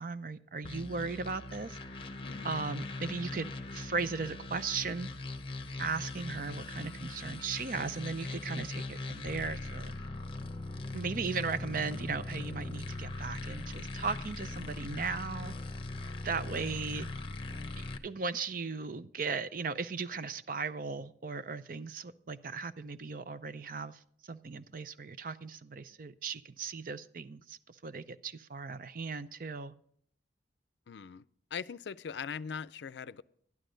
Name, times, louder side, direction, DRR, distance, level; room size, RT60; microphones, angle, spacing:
voice 1, 0.0-1.8 2.4-5.1 5.8-9.9 10.9-15.5 16.2-17.1 17.8-24.0 24.3-29.7, right 4 dB, 50° right, 0.5 m, -37 dB
sound 1, 0.6-18.0, left 2 dB, 30° left, 0.8 m, -40 dB
voice 2, 2.2-2.7 30.9-31.3 31.5-33.2, left 6 dB, 80° left, 0.4 m, -41 dB
12.0 x 11.0 x 3.8 m
head